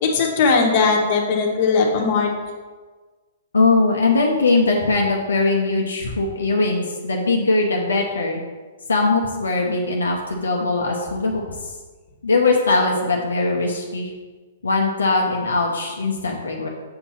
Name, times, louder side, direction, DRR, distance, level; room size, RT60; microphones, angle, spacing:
voice 1, 0.0-2.3, left 4 dB, 50° left, 0 dB, 1.2 m, -18 dB
voice 2, 3.5-8.4 8.9-11.7 12.2-14.1 14.6-16.7, left 3 dB, 85° left, 0 dB, 0.7 m, -20 dB
6.7 x 2.8 x 5.6 m, 1.4 s
hypercardioid pair, 125°, 0 cm